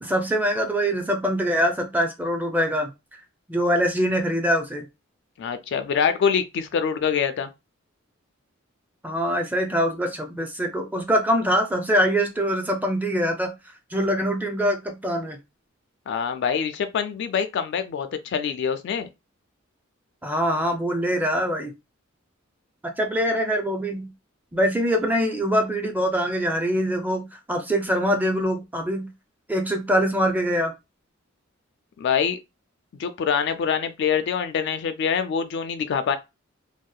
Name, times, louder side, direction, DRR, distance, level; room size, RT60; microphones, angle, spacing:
voice 1, 0.0-2.9 3.5-4.9 9.0-13.5 13.9-15.4 20.2-21.7 22.8-24.1 24.5-29.1 29.5-30.7, equal, 10° right, 0.4 m, -23 dB
voice 2, 5.4-7.5 16.1-19.1 32.0-32.4 33.0-36.2, left 7 dB, 60° left, 0.3 m, -25 dB
2.7 x 2.1 x 2.3 m
head